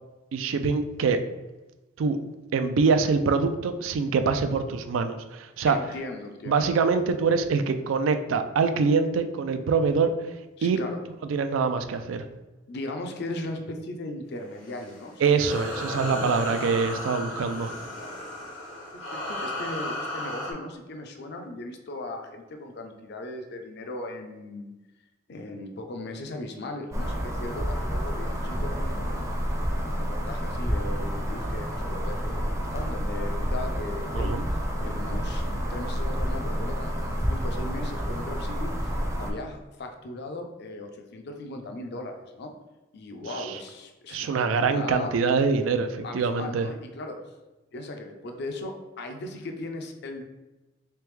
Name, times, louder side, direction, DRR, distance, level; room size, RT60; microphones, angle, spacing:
voice 1, 0.3-1.2 2.0-2.2 2.5-5.8 6.5-10.1 10.6-10.8 11.3-12.3 15.2-17.7 34.1-34.5 44.1-46.7, right 5 dB, 90° right, 9 dB, 0.3 m, -24 dB
voice 2, 5.7-6.7 10.6-11.0 12.7-16.7 17.9-18.2 18.9-24.7 25.3-29.5 30.0-35.4 35.7-42.5 42.9-45.1 46.0-47.3 47.7-50.3, left 2 dB, 60° left, 4 dB, 0.5 m, -38 dB
sound 1, 14.5-20.5, left 1 dB, 75° left, 0.9 m, -35 dB
sound 2, 26.9-39.3, equal, 15° right, 0.5 m, -29 dB
3.3 x 3.3 x 3.2 m, 1.1 s
head